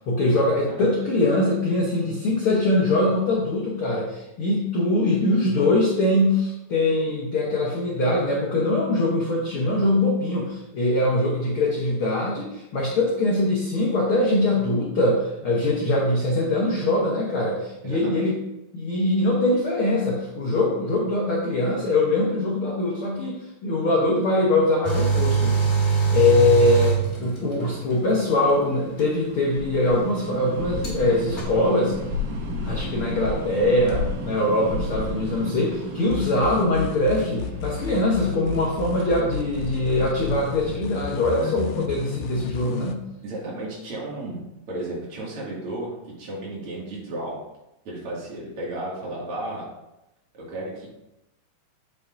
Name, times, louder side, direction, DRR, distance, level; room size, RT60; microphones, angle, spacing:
voice 1, 0.0-18.3 18.7-25.7 26.1-31.9 32.6-43.0, left 2 dB, 70° left, -3 dB, 1.2 m, -22 dB
voice 2, 17.8-18.2 41.4-41.5 43.2-44.4 44.7-47.4 47.8-49.6 50.4-50.9, right 1 dB, 45° right, -5 dB, 2.7 m, -33 dB
sound 1, 24.8-27.7 29.0-29.1 30.8-30.9 31.4-31.5, right 5 dB, 30° left, 1.4 m, -22 dB
sound 2, 25.4-40.7, left 1 dB, 85° right, 3.0 m, -34 dB
sound 3, 36.1-42.9, left 9 dB, 90° left, 2.3 m, -32 dB
8.4 x 6.5 x 2.6 m, 0.89 s
omnidirectional pair, 4.0 m